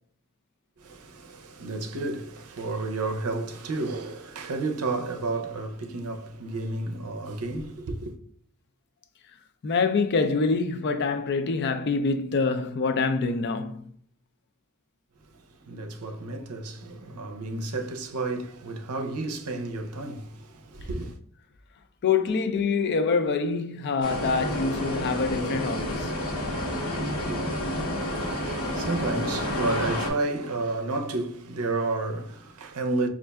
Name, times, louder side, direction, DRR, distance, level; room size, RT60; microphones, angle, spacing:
voice 1, 0.8-8.2 15.2-21.2 27.1-27.4 27.9-33.1, right 3 dB, 90° right, 0.6 m, -31 dB
voice 2, 9.6-13.9 22.0-26.2, left 4 dB, 50° left, 0.4 m, -25 dB
sound 1, 24.0-30.1, left 1 dB, 80° left, 1.1 m, -30 dB
5.2 x 2.5 x 2.2 m
head